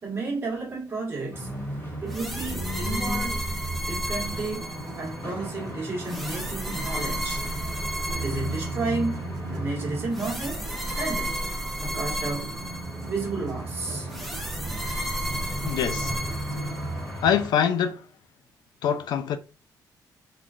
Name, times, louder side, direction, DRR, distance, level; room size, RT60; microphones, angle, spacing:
voice 1, 0.0-1.6 2.0-3.4 3.8-7.4 8.1-9.2 9.5-10.6 10.9-11.4 11.8-12.5 13.0-14.1, right 3 dB, 30° right, 1.2 m, -32 dB
sound 1, 1.3-17.5, right 1 dB, 30° left, 1.0 m, -35 dB
sound 2, 2.1-5.2 6.1-9.2 10.1-13.3 14.1-17.2, right 1 dB, ahead, 0.5 m, -33 dB
sound 3, 3.9-17.1, right 4 dB, 55° right, 0.4 m, -42 dB
voice 2, 15.6-16.1 17.2-18.0 18.8-19.4, left 8 dB, 80° left, 0.4 m, -24 dB
3.7 x 2.3 x 2.4 m
wide cardioid pair, 170°, 7 cm